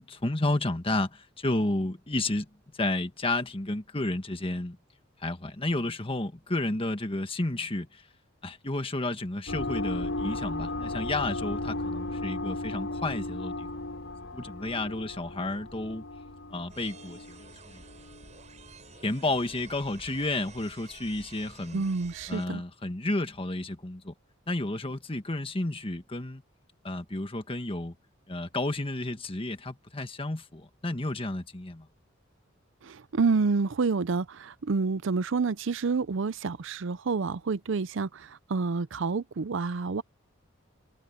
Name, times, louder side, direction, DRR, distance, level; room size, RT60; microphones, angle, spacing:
voice 1, 0.0-2.4 2.7-4.8 5.2-8.0 8.4-13.7 14.3-16.0 16.5-17.8 19.0-21.9 22.3-24.1 24.5-26.4 26.8-27.9 28.3-31.9, left 2 dB, 25° left, 1.5 m, -31 dB
sound 1, 9.5-18.6, left 2 dB, 70° left, 6.9 m, -35 dB
sound 2, 16.7-22.5, right 3 dB, 35° right, 7.5 m, -50 dB
voice 2, 21.7-22.6 32.8-40.0, right 4 dB, 65° right, 0.5 m, -28 dB
head